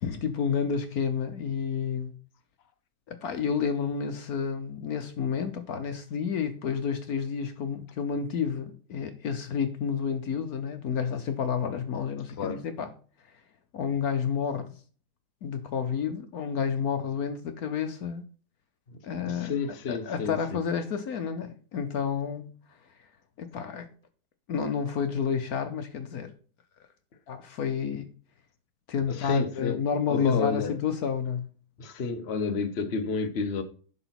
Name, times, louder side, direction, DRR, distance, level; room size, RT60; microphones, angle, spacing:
voice 1, 0.0-2.1 3.1-12.9 13.7-14.7 15.4-18.2 19.0-19.5 19.9-22.5 23.4-23.9 24.5-26.3 27.3-28.1 28.9-31.5, left 6 dB, 70° left, 1.3 m, -30 dB
voice 2, 19.2-20.6 29.1-29.8 30.1-30.7 31.8-33.6, left 5 dB, 45° left, 1.2 m, -30 dB
11.0 x 4.0 x 5.9 m
omnidirectional pair, 1.7 m